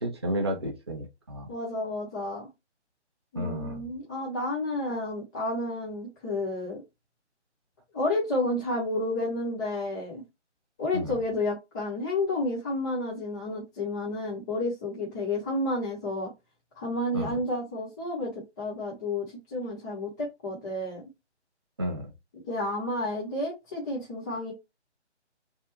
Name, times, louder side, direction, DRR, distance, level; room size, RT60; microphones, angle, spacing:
voice 1, 0.0-1.5 3.4-3.9 10.9-11.2 17.1-17.4 21.8-22.1, equal, 25° right, 0.6 m, -32 dB
voice 2, 1.5-2.5 3.3-6.8 7.9-10.2 10.8-16.3 16.7-21.0 22.4-24.5, left 2 dB, 15° left, 0.9 m, -31 dB
3.5 x 2.4 x 4.4 m
figure-of-eight pair, 155°, 35 cm